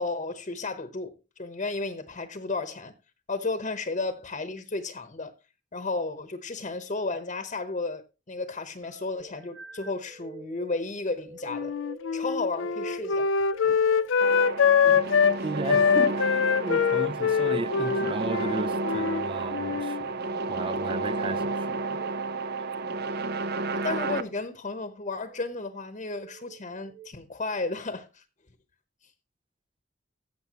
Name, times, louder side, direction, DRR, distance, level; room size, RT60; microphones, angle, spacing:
voice 1, 0.0-2.9 3.3-5.3 5.7-11.7 12.1-13.3 13.7-13.8 23.7-28.2, left 3 dB, 40° left, 1.0 m, -33 dB
sound 1, 8.8-18.8 19.5-19.8 21.8-22.1 22.9-23.4 24.0-24.3 25.1-25.6 26.1-27.1, right 3 dB, 80° right, 1.7 m, -47 dB
Wind instrument woodwind instrument, 11.5-15.4 15.7-19.2 19.5-20.1, left 6 dB, 75° left, 0.5 m, -24 dB
sound 2, 14.2-24.2, right 3 dB, 55° right, 0.8 m, -31 dB
voice 2, 15.4-22.0, right 3 dB, 25° right, 0.5 m, -35 dB
15.0 x 6.8 x 3.0 m
head